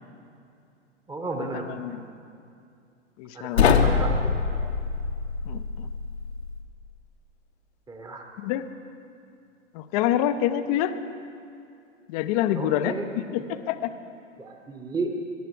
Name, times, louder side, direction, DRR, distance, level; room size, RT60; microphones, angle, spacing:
voice 1, 1.1-1.8 3.3-4.6 7.9-8.3 12.5-13.1 13.4-13.6 14.4-15.1, right 3 dB, 10° right, 3 dB, 1.2 m, -33 dB
voice 2, 3.2-3.7 5.5-5.6 8.4-8.6 9.7-10.9 12.1-12.9 13.3-13.4 13.7-13.9, left 12 dB, 30° left, 11 dB, 0.7 m, -25 dB
sound 1, 3.6-6.6, left 6 dB, 65° left, 1.1 m, -24 dB
22.5 x 11.5 x 4.7 m, 2.5 s
figure-of-eight pair, 100°, 36 cm